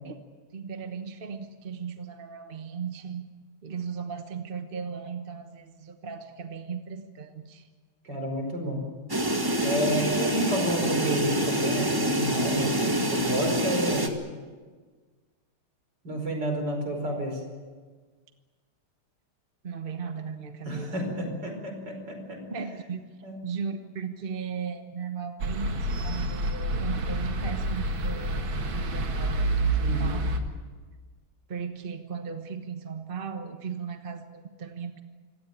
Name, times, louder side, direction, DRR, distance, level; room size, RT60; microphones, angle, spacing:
voice 1, 0.5-3.2 3.6-7.7 19.6-21.2 22.5-23.2 23.4-30.3 31.5-35.0, right 6 dB, 35° right, 7 dB, 1.1 m, -37 dB
voice 2, 8.0-8.8 9.6-14.1 16.0-17.4 20.7-22.4 23.2-23.4 29.8-30.2, equal, 55° right, 3 dB, 5.5 m, -30 dB
sound 1, 9.1-14.1, right 1 dB, 10° right, 1.6 m, -26 dB
sound 2, 25.4-30.4, right 1 dB, 70° right, 2.5 m, -28 dB
25.5 x 17.0 x 8.8 m, 1.5 s
omnidirectional pair, 2.3 m